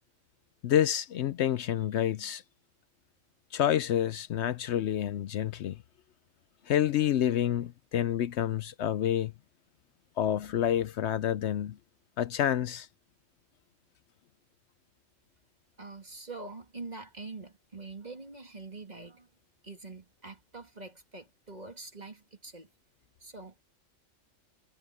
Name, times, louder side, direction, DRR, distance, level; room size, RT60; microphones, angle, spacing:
voice 1, 0.6-2.4 3.5-5.8 6.7-9.3 10.2-11.8 12.2-12.9, left 10 dB, 65° left, 0.8 m, -28 dB
voice 2, 15.8-19.3 19.6-22.7 23.2-23.6, right 3 dB, 30° right, 2.9 m, -45 dB
omnidirectional pair, 1.3 m